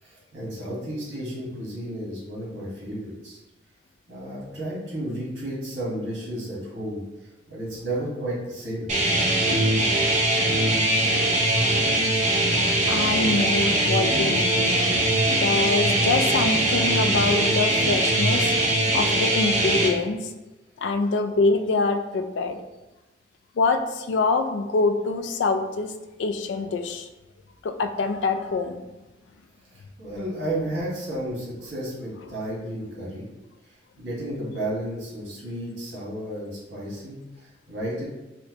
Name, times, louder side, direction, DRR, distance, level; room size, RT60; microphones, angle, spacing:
voice 1, 0.0-3.4 4.1-8.9 29.7-33.3 33.7-38.1, right 1 dB, 85° right, -5 dB, 1.3 m, -33 dB
sound 1, 8.9-19.9, right 1 dB, 40° right, 0.6 m, -21 dB
voice 2, 12.9-14.8 15.3-18.5 18.9-20.3 20.8-22.6 23.6-25.9 26.2-27.1 27.6-28.8, left 3 dB, 75° left, 7 dB, 0.3 m, -25 dB
4.3 x 2.1 x 2.8 m, 1.1 s
head